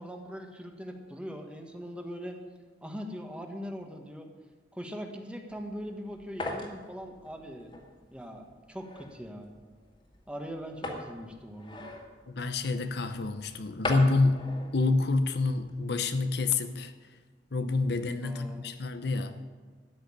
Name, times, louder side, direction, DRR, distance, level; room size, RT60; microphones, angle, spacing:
voice 1, 0.0-2.4 2.8-4.3 4.7-7.7 8.1-9.5 10.3-11.8 18.2-18.7, equal, 5° right, 1.4 m, -41 dB
sound 1, 5.5-15.9, left 2 dB, 30° left, 2.1 m, -42 dB
voice 2, 12.3-16.9 17.5-19.4, left 3 dB, 65° left, 0.7 m, -28 dB
13.5 x 6.3 x 10.0 m
head